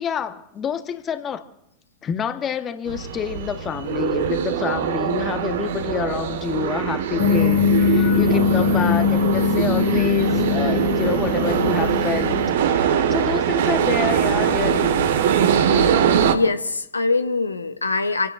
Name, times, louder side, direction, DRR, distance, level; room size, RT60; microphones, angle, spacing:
voice 1, 0.0-1.4 2.0-15.0 15.2-15.3, left 8 dB, 25° left, 1.2 m, -28 dB
sound 1, 2.9-16.4, right 8 dB, 60° right, 1.4 m, -22 dB
sound 2, 7.2-12.5, left 8 dB, 50° left, 1.9 m, -21 dB
voice 2, 16.3-18.3, left 3 dB, 80° left, 0.8 m, -23 dB
29.5 x 16.5 x 2.5 m
figure-of-eight pair, 90°, 0 cm